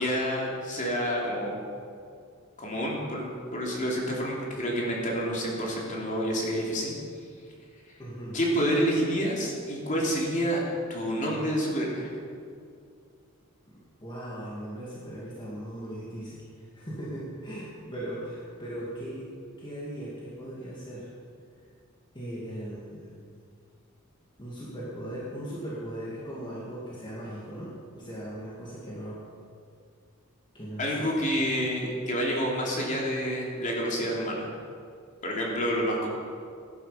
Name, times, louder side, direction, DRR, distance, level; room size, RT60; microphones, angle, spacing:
voice 1, 0.0-1.6 2.6-6.9 8.3-10.6 10.9-12.1 30.8-34.5 35.2-36.1, equal, 40° left, -2 dB, 3.1 m, -28 dB
voice 2, 8.0-8.4 13.7-19.3 19.6-21.1 22.1-23.2 24.4-29.2 30.5-31.2, right 1 dB, 25° left, -7 dB, 2.3 m, -38 dB
17.5 x 11.0 x 5.1 m, 2.3 s
head